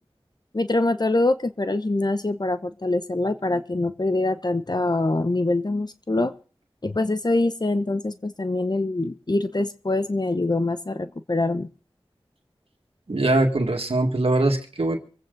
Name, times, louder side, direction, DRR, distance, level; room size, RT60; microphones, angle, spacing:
voice 1, 0.5-6.3 6.8-11.7, left 2 dB, 45° left, 11 dB, 0.9 m, -24 dB
voice 2, 13.1-15.0, right 2 dB, 80° right, 3 dB, 1.9 m, -22 dB
25.0 x 8.8 x 3.9 m, 0.40 s
wide cardioid pair, 50°, 10 cm